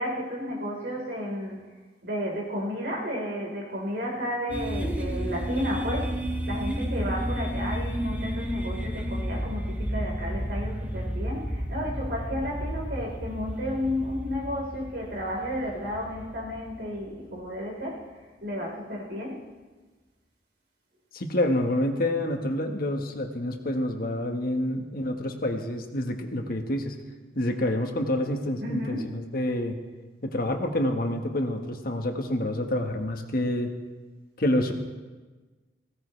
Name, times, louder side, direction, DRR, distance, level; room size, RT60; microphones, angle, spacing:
voice 1, 0.0-1.7 2.0-6.2 6.5-18.1 18.4-19.4 28.6-29.1, equal, 70° right, -2 dB, 4.3 m, -32 dB
sound 1, 4.5-17.4, equal, 10° right, 1.3 m, -32 dB
voice 2, 21.1-27.0 27.3-29.8 30.2-33.7 34.4-34.7, left 1 dB, 55° left, 4 dB, 1.4 m, -28 dB
19.5 x 16.5 x 3.3 m, 1.3 s
head